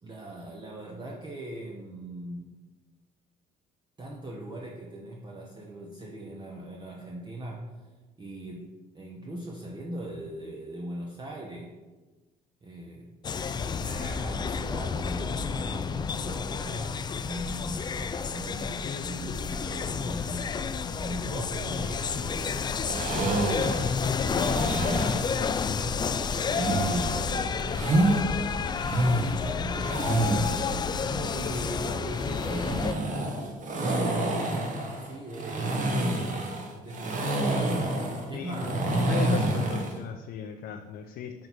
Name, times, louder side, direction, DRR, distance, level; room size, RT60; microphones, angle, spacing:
voice 1, 0.0-2.5 4.0-7.7 8.2-11.7 12.6-13.1 13.4-27.8 28.9-33.1 34.9-36.4 36.8-37.7 38.3-39.4, right 1 dB, 25° right, -1 dB, 0.9 m, -40 dB
sound 1, 13.2-32.9, left 6 dB, 25° left, 0.3 m, -30 dB
sound 2, 22.9-25.3 26.4-28.2 28.7-30.7 32.1-40.0, right 1 dB, 50° right, 1.2 m, -28 dB
voice 2, 38.3-41.3, left 8 dB, 65° left, 3 dB, 0.6 m, -37 dB
6.5 x 4.1 x 6.0 m, 1.2 s
cardioid pair, 110°, 17 cm